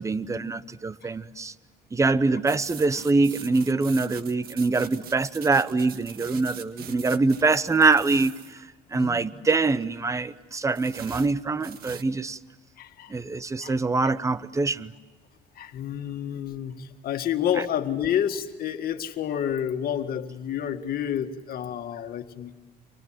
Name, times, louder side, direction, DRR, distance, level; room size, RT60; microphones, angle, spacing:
voice 1, 0.0-1.5 1.9-8.7 8.9-12.4 13.1-14.9, right 3 dB, 20° right, 0.9 m, -24 dB
sound 1, 2.5-8.6 10.7-12.1, right 8 dB, 60° right, 1.7 m, -43 dB
voice 2, 8.9-9.2 12.8-13.2 13.6-13.7 14.0-14.1 15.6-22.6, left 9 dB, 65° left, 1.9 m, -29 dB
30.0 x 26.0 x 7.7 m
cardioid pair, 110°, 17 cm